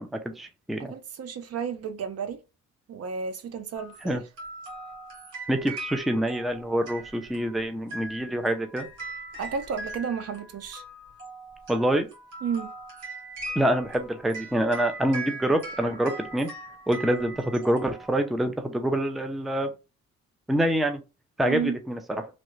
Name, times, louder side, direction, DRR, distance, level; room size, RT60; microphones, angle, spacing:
voice 1, 0.0-0.9 4.0-4.2 5.5-8.9 11.7-12.1 13.6-16.5 16.9-19.7 20.5-21.0 21.4-22.3, right 1 dB, ahead, 0.5 m, -26 dB
voice 2, 0.9-2.4 2.9-4.2 9.3-10.8 12.4-12.7 21.4-21.8, right 6 dB, 55° right, 0.6 m, -32 dB
sound 1, 3.7-18.5, right 2 dB, 80° right, 1.6 m, -40 dB
3.2 x 2.5 x 3.1 m
cardioid pair, 90°, 30 cm